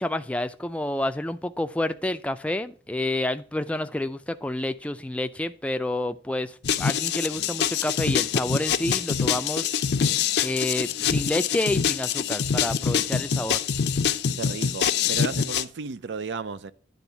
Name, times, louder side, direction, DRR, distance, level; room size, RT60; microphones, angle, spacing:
voice 1, 0.0-9.7 10.4-13.6, left 1 dB, 5° left, 0.4 m, -29 dB
sound 1, 6.6-15.6, left 7 dB, 70° left, 0.5 m, -25 dB
voice 2, 14.4-16.7, right 5 dB, 80° right, 0.5 m, -34 dB
10.0 x 3.5 x 7.0 m
head